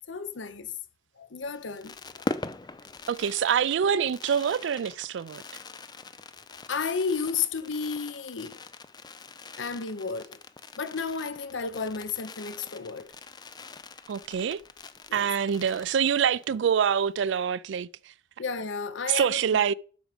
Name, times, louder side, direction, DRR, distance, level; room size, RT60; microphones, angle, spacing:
voice 1, 0.1-0.7 1.2-1.9 6.7-8.6 9.6-10.4 10.8-13.1 15.1-15.3 18.4-19.6, left 5 dB, 90° left, 0.8 m, -32 dB
Fireworks, 1.4-16.6 16.9-17.0 17.2-17.5, left 3 dB, 20° left, 0.5 m, -42 dB
voice 2, 3.1-5.4 14.1-14.6 15.1-17.9 19.1-19.7, right 8 dB, 75° right, 0.3 m, -25 dB
12.0 x 4.9 x 5.0 m
head